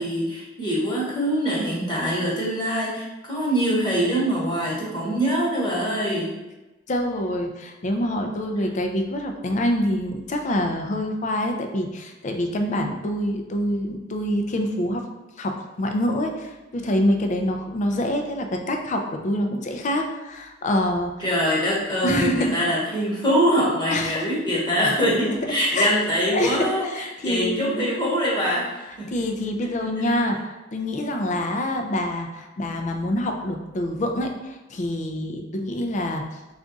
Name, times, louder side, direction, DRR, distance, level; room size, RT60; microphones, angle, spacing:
voice 1, 0.0-6.3 21.2-29.1, equal, 25° left, -6 dB, 1.1 m, -24 dB
voice 2, 6.9-15.0 15.4-21.1 22.0-22.5 23.9-24.2 25.7-25.9 26.3-27.8 29.1-36.2, left 1 dB, 40° left, 4 dB, 0.4 m, -26 dB
3.6 x 2.4 x 3.9 m, 1.1 s
head